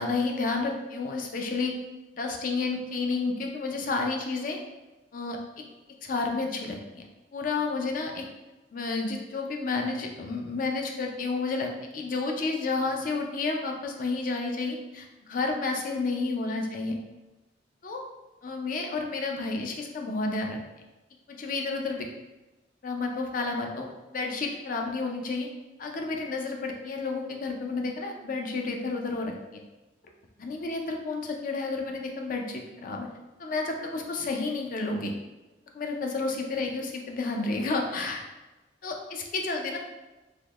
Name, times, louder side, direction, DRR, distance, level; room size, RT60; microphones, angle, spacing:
voice 1, 0.0-1.8 2.2-4.6 5.1-5.6 6.0-7.0 7.3-8.3 8.7-17.0 17.8-18.0 18.4-20.6 21.3-22.1 22.8-25.5 25.8-29.6 30.4-33.1 33.4-35.1 35.7-38.2 38.8-39.8, left 3 dB, 45° left, 2 dB, 0.4 m, -31 dB
3.5 x 2.9 x 2.3 m, 1.1 s
head